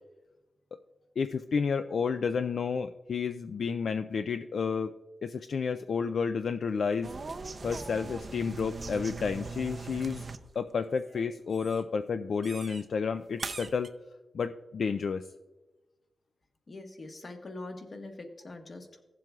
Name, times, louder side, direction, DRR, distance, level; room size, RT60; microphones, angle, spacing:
voice 1, 1.2-4.9 5.2-7.1 7.6-10.3 10.6-13.9 14.3-15.2, left 5 dB, 75° left, 9 dB, 0.3 m, -31 dB
sound 1, 7.0-10.5 10.8-11.2 11.5-11.8 12.4-12.8 13.4-13.9, right 3 dB, 45° right, 0.5 m, -40 dB
voice 2, 16.7-19.0, left 2 dB, 45° left, 4 dB, 1.2 m, -43 dB
16.0 x 7.6 x 2.4 m, 1.1 s
wide cardioid pair, 105°, 0 cm